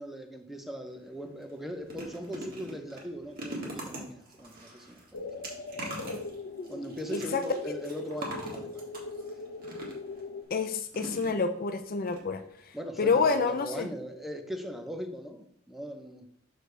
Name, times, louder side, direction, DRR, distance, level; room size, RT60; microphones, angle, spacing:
voice 1, 0.0-5.5 6.7-8.8 12.7-16.3, equal, ahead, 5 dB, 0.7 m, -40 dB
sound 1, 0.9-1.0 1.4-10.2 10.9-11.7 12.0-12.2 12.4-12.5, right 1 dB, 45° right, 1.7 m, -43 dB
sound 2, 5.1-10.4, left 3 dB, 90° left, 0.7 m, -40 dB
voice 2, 7.1-7.4 10.5-12.4 13.0-13.9, left 4 dB, 45° left, 8 dB, 0.5 m, -28 dB
6.5 x 6.4 x 3.3 m, 0.66 s
head